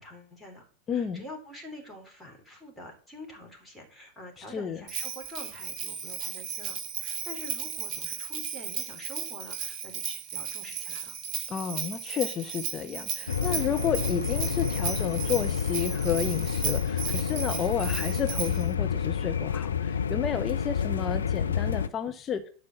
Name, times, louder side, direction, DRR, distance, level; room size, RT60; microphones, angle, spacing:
voice 1, 0.0-11.2, left 1 dB, ahead, -1 dB, 3.8 m, -46 dB
voice 2, 0.9-1.2 4.5-4.8 11.5-22.4, left 8 dB, 25° left, 7 dB, 1.1 m, -31 dB
Bell, 4.9-18.7, right 7 dB, 35° right, 1.2 m, -35 dB
sound 1, 13.3-21.9, left 7 dB, 70° left, 0.7 m, -29 dB
11.5 x 4.8 x 7.3 m, 0.41 s
figure-of-eight pair, 90°, 0 cm